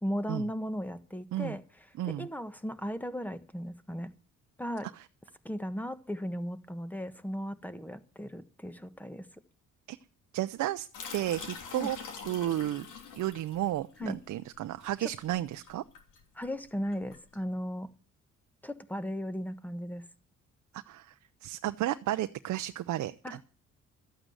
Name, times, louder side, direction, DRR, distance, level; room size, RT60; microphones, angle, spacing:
voice 1, 0.0-1.6 2.0-4.1 4.6-4.9 5.4-9.3 11.8-11.9 14.0-14.2 15.0-15.1 16.3-17.9 18.6-20.0 23.2-23.4, equal, 5° left, 12 dB, 1.4 m, -36 dB
voice 2, 2.0-2.3 5.0-5.1 9.9-10.0 10.3-10.9 11.1-12.0 12.3-12.9 13.2-15.8 20.7-21.1 21.4-23.4, right 13 dB, 70° right, 9 dB, 0.7 m, -32 dB
sound 1, 10.9-17.3, left 5 dB, 85° left, 3.1 m, -45 dB
13.5 x 8.9 x 8.0 m, 0.38 s
cardioid pair, 90°, 30 cm